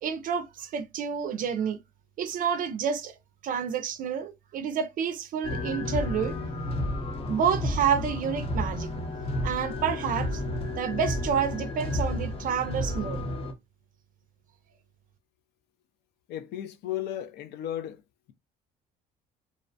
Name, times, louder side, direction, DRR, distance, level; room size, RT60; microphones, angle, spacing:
voice 1, 0.0-1.8 2.2-3.2 3.4-6.4 7.3-8.9 9.4-10.4 10.8-13.2, right 7 dB, 55° right, 0.4 m, -29 dB
sound 1, 5.4-13.5, left 1 dB, 35° left, 0.6 m, -31 dB
voice 2, 16.3-18.0, left 12 dB, 80° left, 0.4 m, -34 dB
2.5 x 2.0 x 2.6 m
cardioid pair, 110°, 17 cm